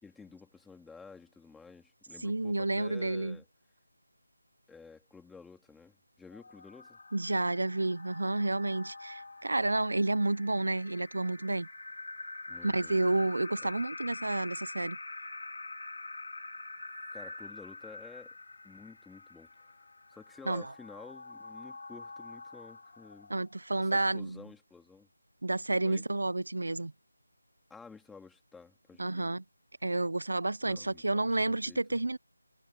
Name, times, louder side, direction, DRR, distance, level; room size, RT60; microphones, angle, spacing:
voice 1, 0.0-3.5 4.7-7.0 12.5-13.0 13.6-13.7 17.1-18.4 18.6-23.3 23.8-25.1 25.8-26.0 27.7-29.3 30.6-31.8, left 4 dB, 5° left, 3.0 m, -52 dB
voice 2, 2.2-3.4 7.1-11.7 12.6-15.0 20.5-20.7 23.3-24.4 25.4-26.9 29.0-29.4 29.8-32.2, right 2 dB, 75° right, 0.9 m, -30 dB
sound 1, 6.3-23.7, left 3 dB, 55° left, 5.3 m, -46 dB
sound 2, 7.3-17.5, right 9 dB, 15° right, 2.3 m, -57 dB
figure-of-eight pair, 170°, 0 cm